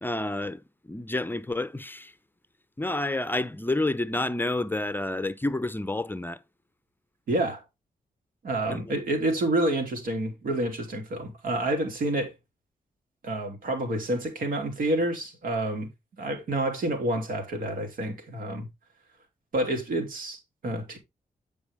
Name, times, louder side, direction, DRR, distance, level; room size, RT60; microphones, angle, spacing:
voice 1, 0.0-2.1 2.8-6.4 8.7-8.9, left 2 dB, 15° left, 0.6 m, -29 dB
voice 2, 7.3-7.6 8.4-12.3 13.2-15.9 16.2-18.7 19.5-21.0, right 1 dB, 85° right, 2.9 m, -28 dB
9.5 x 5.3 x 3.5 m
cardioid pair, 95°, 14 cm